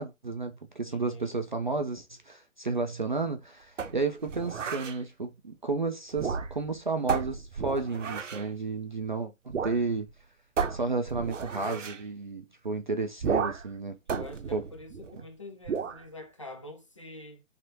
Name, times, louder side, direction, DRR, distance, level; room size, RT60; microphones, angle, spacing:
voice 1, 0.0-10.1 10.7-14.2 14.5-14.6, right 3 dB, 40° right, 0.4 m, -32 dB
voice 2, 0.8-1.4 14.1-17.4, left 2 dB, 25° left, 0.4 m, -46 dB
sound 1, 3.8-5.0 6.1-6.7 7.1-8.5 9.5-9.8 10.1-10.2 10.6-12.0 13.2-13.7 14.1-15.2 15.6-16.0, right 6 dB, 65° right, 0.7 m, -33 dB
4.2 x 3.3 x 2.6 m
figure-of-eight pair, 140°, 40 cm